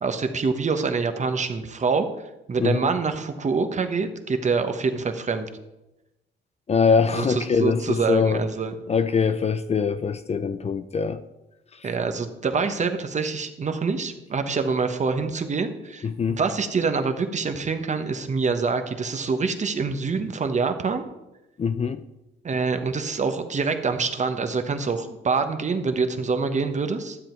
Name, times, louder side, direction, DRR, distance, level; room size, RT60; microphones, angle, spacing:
voice 1, 0.0-2.1 2.5-5.5 7.1-8.7 11.8-21.0 22.4-27.2, right 4 dB, 35° right, 7 dB, 1.2 m, -25 dB
voice 2, 2.6-2.9 6.7-8.5 8.9-11.2 11.7-11.9 16.0-16.4 21.6-22.0, left 5 dB, 30° left, 11 dB, 0.5 m, -23 dB
12.0 x 7.7 x 4.5 m, 0.96 s
cardioid pair, 90°, 20 cm